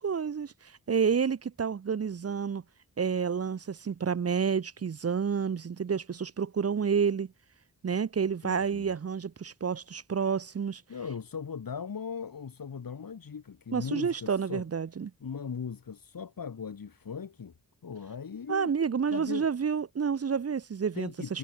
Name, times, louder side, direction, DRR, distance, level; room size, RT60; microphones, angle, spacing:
voice 1, 0.0-2.6 3.0-7.3 7.8-10.8 13.7-15.1 18.5-21.4, right 6 dB, 45° right, 0.7 m, -29 dB
voice 2, 8.4-8.9 10.9-14.6 15.2-17.5 17.8-18.7 19.1-19.5 20.9-21.4, left 6 dB, 75° left, 2.6 m, -39 dB
wide cardioid pair, 105°, 34 cm